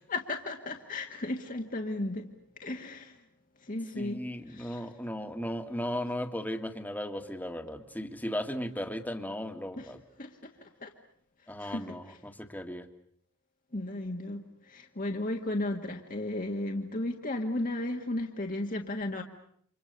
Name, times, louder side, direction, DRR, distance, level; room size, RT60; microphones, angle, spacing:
voice 1, 0.1-2.3 2.6-3.2 3.6-4.8 9.8-9.9 10.2-10.9 11.6-12.2 13.7-19.2, left 2 dB, 40° left, 1.7 m, -35 dB
voice 2, 3.9-10.0 11.5-12.9, equal, 10° left, 1.9 m, -36 dB
30.0 x 26.0 x 6.8 m
head